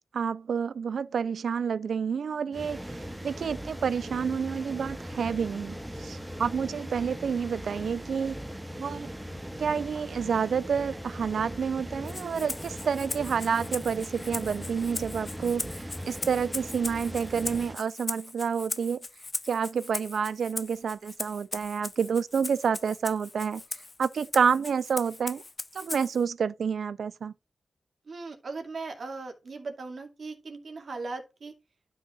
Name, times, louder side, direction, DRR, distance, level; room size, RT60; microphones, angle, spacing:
voice 1, 0.1-2.8 3.2-5.7 6.0-8.4 8.8-9.1 9.6-15.7 16.1-19.0 19.5-23.6 24.0-25.4 25.8-27.3, right 6 dB, 85° right, 0.4 m, -29 dB
sound 1, 2.5-17.8, equal, 10° right, 0.8 m, -39 dB
Rattle (instrument), 12.1-26.2, left 2 dB, 30° left, 0.4 m, -39 dB
voice 2, 28.1-31.5, right 3 dB, 65° right, 2.3 m, -38 dB
12.0 x 5.6 x 2.4 m
wide cardioid pair, 85°, 0 cm